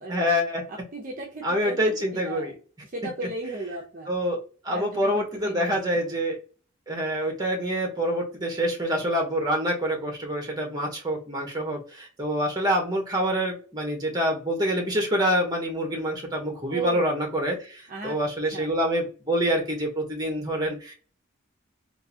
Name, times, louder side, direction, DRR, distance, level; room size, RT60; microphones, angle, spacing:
voice 1, 0.1-0.6 1.4-2.5 4.0-6.4 6.9-20.9, equal, 20° right, 0 dB, 1.1 m, -26 dB
voice 2, 0.7-1.9 2.3-2.5 2.8-4.1 4.7-5.8 16.7-17.1 17.9-18.2 18.5-18.7, right 2 dB, 40° right, 0 dB, 0.6 m, -35 dB
3.7 x 2.6 x 2.7 m, 0.38 s
head